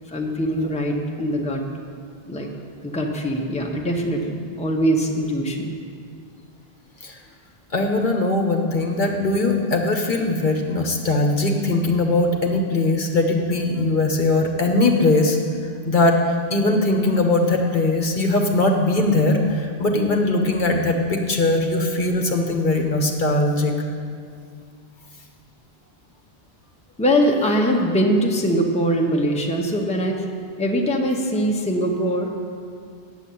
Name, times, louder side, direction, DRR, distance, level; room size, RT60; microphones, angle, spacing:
voice 1, 0.1-1.6 2.3-2.5 2.8-5.7 27.0-30.2 30.6-32.3, equal, 5° left, 1 dB, 0.8 m, -22 dB
voice 2, 7.7-15.4 15.9-23.8, left 2 dB, 55° left, 2 dB, 1.0 m, -20 dB
9.1 x 7.1 x 8.4 m, 2.2 s
omnidirectional pair, 1.0 m